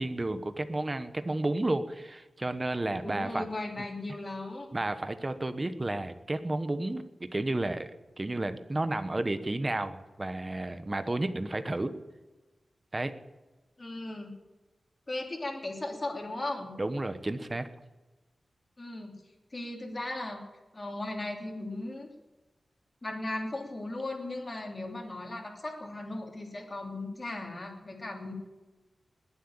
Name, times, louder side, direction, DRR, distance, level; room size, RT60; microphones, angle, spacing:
voice 1, 0.0-3.4 4.7-7.9 8.2-11.9 12.9-13.1 16.8-17.7, right 2 dB, 20° right, 10 dB, 1.1 m, -32 dB
voice 2, 3.0-4.7 13.8-14.3 15.1-16.7 18.8-19.2 19.5-20.4 20.7-22.1 23.0-28.3, left 2 dB, 25° left, 1 dB, 3.2 m, -37 dB
20.5 x 7.9 x 8.8 m, 1.2 s
wide cardioid pair, 150°, 0 cm